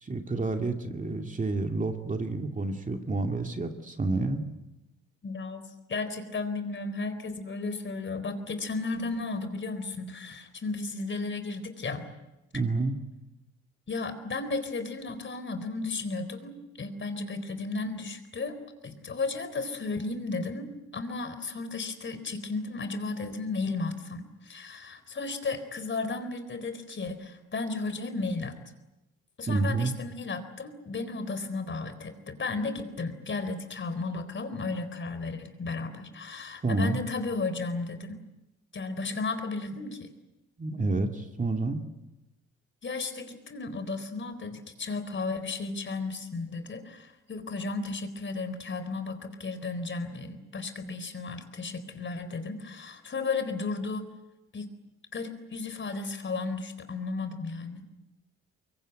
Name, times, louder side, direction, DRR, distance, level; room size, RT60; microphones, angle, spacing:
voice 1, 0.0-4.4 12.5-12.9 29.5-29.9 36.6-37.0 40.6-41.8, right 3 dB, 25° right, 5 dB, 2.5 m, -29 dB
voice 2, 5.2-12.0 13.9-18.6 18.8-28.5 29.4-38.2 38.7-40.1 42.8-54.1 54.5-54.7 55.1-57.9, left 3 dB, 40° left, 10 dB, 4.0 m, -34 dB
24.0 x 23.0 x 9.2 m, 0.96 s
cardioid pair, 90°, 30 cm